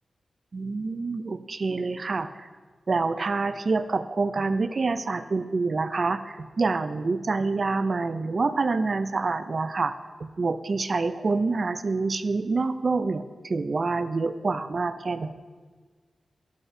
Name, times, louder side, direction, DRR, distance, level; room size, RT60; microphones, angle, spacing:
voice 1, 0.5-2.3 2.9-10.0 10.2-15.3, right 3 dB, 50° right, 12 dB, 0.4 m, -27 dB
9.7 x 9.3 x 2.6 m, 1.5 s
wide cardioid pair, 90°, 0 cm